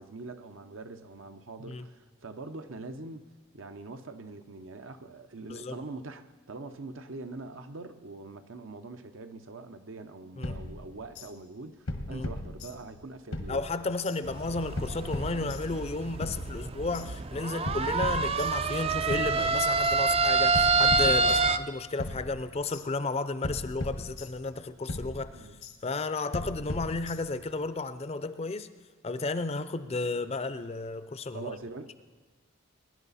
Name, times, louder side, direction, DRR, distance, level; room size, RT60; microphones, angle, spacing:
voice 1, 0.0-3.3 3.5-13.6 21.0-21.4 25.3-25.6 31.3-32.0, right 3 dB, 70° right, 0.8 m, -43 dB
voice 2, 5.4-5.8 10.4-10.6 12.1-12.2 13.5-21.2 21.5-25.5 25.8-28.7 29.0-31.5, left 3 dB, 30° left, 0.5 m, -33 dB
sound 1, 10.4-11.3 11.9-13.0 13.3-14.2 14.8-15.9 16.2-17.1 17.7-18.8 19.1-20.0 20.5-21.7 22.0-22.9 23.4-24.6 24.9-25.8 26.3-27.5, left 1 dB, 90° left, 1.4 m, -38 dB
sound 2, 14.2-21.6, right 4 dB, 30° right, 0.4 m, -27 dB
21.5 x 10.5 x 4.1 m
head